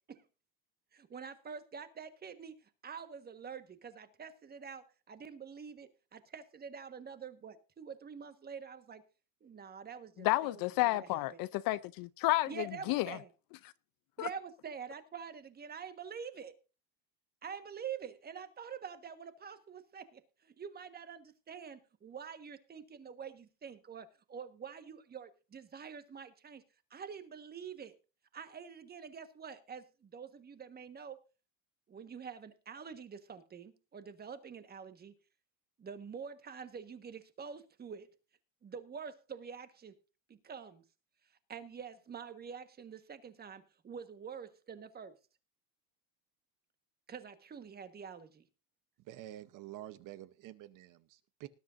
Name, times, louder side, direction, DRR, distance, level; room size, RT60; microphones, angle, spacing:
voice 1, 0.9-9.0 9.4-11.2 12.5-13.3 14.2-16.5 17.4-26.6 26.9-28.0 28.3-31.2 31.9-35.1 35.8-38.1 38.6-39.9 40.3-40.8 41.5-45.1 47.1-48.5, right 7 dB, 20° right, 1.4 m, -46 dB
voice 2, 10.2-13.2 14.2-14.3, left 18 dB, 50° left, 0.6 m, -31 dB
voice 3, 49.1-51.5, right 14 dB, 40° right, 0.9 m, -48 dB
19.5 x 10.5 x 2.6 m
cardioid pair, 150°, 47 cm